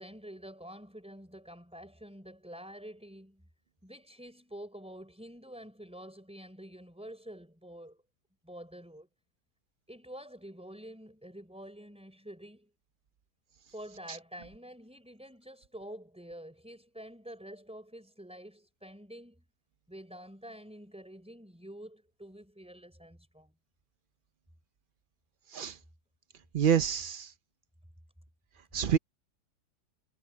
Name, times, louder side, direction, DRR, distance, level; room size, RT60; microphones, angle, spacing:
voice 1, 0.0-3.5 3.8-8.0 8.4-9.1 9.9-12.7 13.7-19.4 19.9-23.5, equal, 5° right, 3.9 m, -48 dB
voice 2, 26.5-27.3 28.7-29.0, right 8 dB, 80° right, 0.4 m, -27 dB
omnidirectional pair, 1.7 m